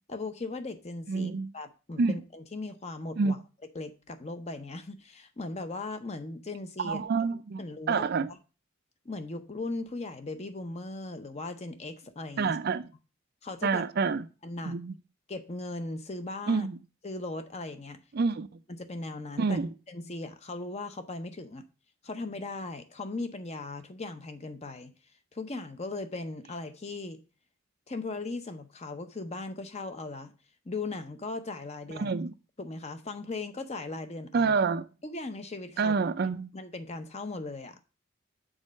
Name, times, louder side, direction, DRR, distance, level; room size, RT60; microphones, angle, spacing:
voice 1, 0.1-3.4 3.7-7.0 7.6-8.4 9.0-12.6 13.4-13.8 14.4-14.8 15.3-16.7 17.0-18.0 18.7-19.6 19.9-21.7 22.0-24.9 25.3-27.2 27.9-30.3 30.7-32.1 32.6-34.5 35.0-35.9 36.5-37.8, left 3 dB, 30° left, 0.7 m, -38 dB
voice 2, 1.1-1.5 2.0-2.1 3.2-3.4 6.8-7.6 7.9-8.3 12.4-12.9 13.6-14.3 14.6-14.9 16.5-16.8 18.1-18.5 19.4-19.7 31.9-32.3 34.3-34.9 35.8-36.5, right 4 dB, 50° right, 0.4 m, -27 dB
6.4 x 4.1 x 6.3 m
head